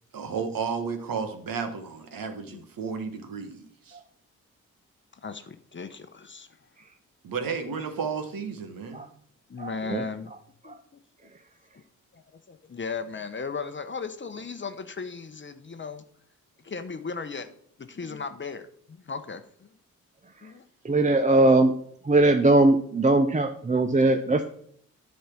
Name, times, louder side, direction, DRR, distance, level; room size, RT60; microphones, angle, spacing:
voice 1, 0.1-3.6 7.2-9.0, right 5 dB, 60° right, 1.3 m, -32 dB
voice 2, 5.2-6.5 9.5-10.3 10.6-11.0 11.7-11.8 12.1-12.2 12.5-16.0 16.6-17.5 17.8-19.7 20.4-20.6, left 5 dB, 30° left, 0.9 m, -36 dB
voice 3, 9.6-10.0 10.7-10.8 20.8-21.7 22.0-24.5, right 2 dB, 20° right, 0.7 m, -20 dB
10.0 x 4.3 x 6.1 m
hypercardioid pair, 40°, 39 cm